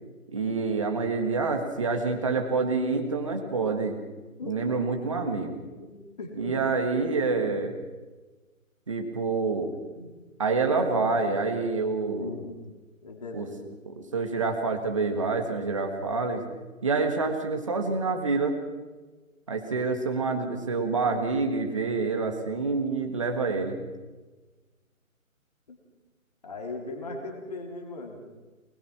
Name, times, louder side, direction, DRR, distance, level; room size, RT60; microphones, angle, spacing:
voice 1, 0.3-3.9 4.5-5.6 6.4-7.7 8.9-9.7 10.4-12.3 13.3-13.5 14.1-16.4 16.8-18.6 19.5-23.8, right 4 dB, 25° right, 4 dB, 1.6 m, -27 dB
voice 2, 6.2-6.5 7.0-7.3 9.9-10.2 10.6-11.2 12.2-12.6 13.0-13.6 25.7-25.8 26.4-28.3, left 3 dB, 30° left, 2 dB, 3.2 m, -39 dB
24.0 x 21.0 x 6.0 m, 1.3 s
hypercardioid pair, 175°, 42 cm